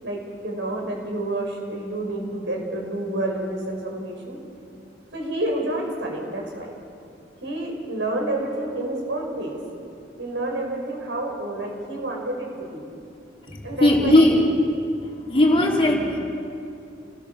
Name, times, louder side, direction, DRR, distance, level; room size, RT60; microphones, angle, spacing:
voice 1, 0.0-4.4 5.1-6.7 7.4-9.6 10.2-12.8 13.6-14.2, right 1 dB, 75° right, 0 dB, 5.8 m, -29 dB
voice 2, 13.4-14.4 14.8-14.9 15.3-16.2, left 1 dB, 30° left, -2 dB, 3.5 m, -18 dB
29.0 x 19.5 x 7.0 m, 2.5 s
head